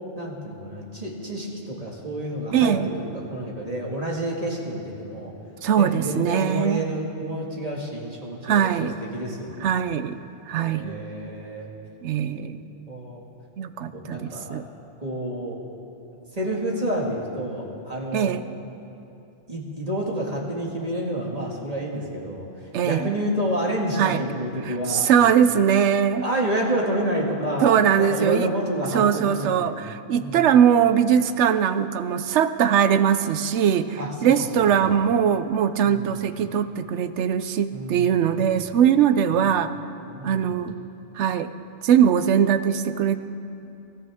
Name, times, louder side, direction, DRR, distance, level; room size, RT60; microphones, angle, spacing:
voice 1, 0.2-5.3 5.7-8.7 9.0-9.8 10.6-11.7 12.4-12.5 12.9-13.2 13.9-14.6 15.0-15.6 16.3-18.4 19.5-25.1 26.2-29.8 30.2-30.5 34.0-34.5 34.8-34.9 35.8-36.1 37.7-38.4 39.3-39.6 40.1-40.5, right 1 dB, 35° right, -2 dB, 2.0 m, -29 dB
voice 2, 2.5-2.9 5.6-6.8 8.4-9.0 9.6-10.2 10.5-11.0 12.0-12.7 13.6-14.6 18.1-18.4 22.7-23.1 24.0-24.2 24.6-26.2 27.6-28.5 28.9-39.7 40.2-40.8 41.1-41.5 41.8-43.2, right 8 dB, 75° right, 11 dB, 0.9 m, -21 dB
24.5 x 13.5 x 3.6 m, 2.8 s
omnidirectional pair, 1.2 m